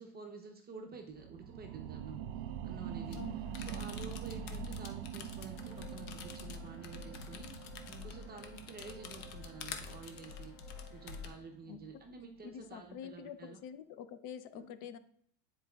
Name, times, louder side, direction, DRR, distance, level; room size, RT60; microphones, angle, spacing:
voice 1, 0.0-2.2 2.6-3.2 3.6-13.6 14.5-14.6, right 4 dB, 20° right, 2 dB, 0.7 m, -50 dB
sound 1, 1.1-12.2 12.7-12.8, right 10 dB, 70° right, 0.6 m, -45 dB
sound 2, 3.0-11.3, left 6 dB, 65° left, 1.0 m, -47 dB
sound 3, 5.5-11.3, right 1 dB, 5° right, 2.4 m, -58 dB
voice 2, 11.7-12.0 12.4-15.0, left 9 dB, 45° left, 12 dB, 0.6 m, -47 dB
9.9 x 4.7 x 2.3 m, 0.65 s
supercardioid pair, 135°, 44 cm